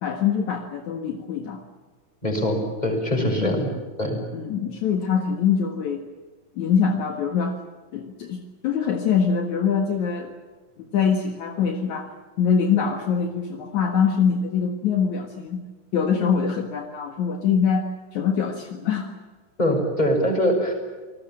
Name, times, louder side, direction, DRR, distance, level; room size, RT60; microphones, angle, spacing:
voice 1, 0.0-1.6 3.1-3.6 4.3-6.0 6.6-7.6 7.9-10.3 10.8-12.1 12.4-15.6 15.9-19.1, left 6 dB, 65° left, 5 dB, 2.9 m, -24 dB
voice 2, 2.2-3.7 4.0-4.2 19.6-20.7, equal, 10° left, 3 dB, 6.3 m, -23 dB
28.5 x 20.0 x 7.5 m, 1.4 s
omnidirectional pair, 3.8 m